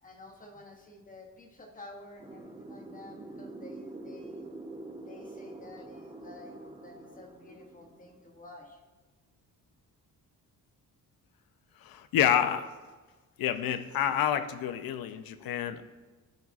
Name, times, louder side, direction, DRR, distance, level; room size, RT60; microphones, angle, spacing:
voice 1, 0.0-4.5 5.1-8.8, left 2 dB, 25° left, 2 dB, 0.8 m, -51 dB
sound 1, 2.2-8.4, right 2 dB, 15° right, 0.5 m, -45 dB
voice 2, 11.8-12.7 13.4-15.8, left 10 dB, 80° left, 10 dB, 0.6 m, -28 dB
13.0 x 4.7 x 2.4 m, 1.3 s
wide cardioid pair, 175°, 35 cm